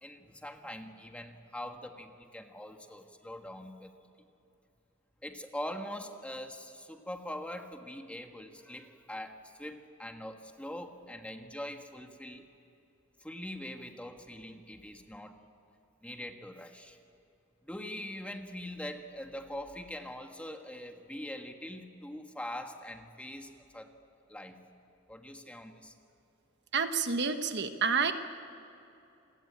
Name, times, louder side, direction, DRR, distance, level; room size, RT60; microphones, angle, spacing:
voice 1, 0.0-3.9 5.2-12.5 13.2-15.4 16.0-17.0 17.6-23.9 24.3-24.6 25.1-25.9, left 1 dB, 5° left, 5 dB, 1.5 m, -43 dB
voice 2, 26.7-28.1, right 5 dB, 55° right, 8 dB, 1.3 m, -29 dB
28.5 x 21.0 x 8.8 m, 2.8 s
head